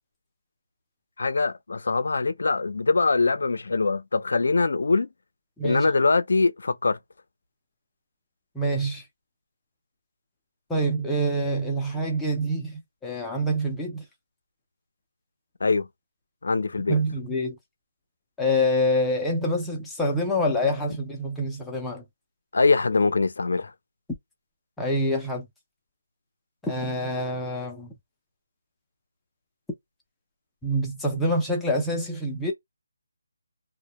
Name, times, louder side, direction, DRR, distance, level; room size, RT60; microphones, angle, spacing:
voice 1, 1.2-5.1 5.6-7.0 15.6-15.9 16.4-17.0 22.5-23.7, left 3 dB, 60° left, 0.4 m, -23 dB
voice 2, 5.6-5.9 8.5-9.0 10.7-14.1 16.9-17.6 18.4-22.0 24.8-25.5 26.6-27.9 30.6-32.5, equal, 5° left, 0.4 m, -26 dB
2.1 x 2.1 x 2.9 m
hypercardioid pair, 175°, 0 cm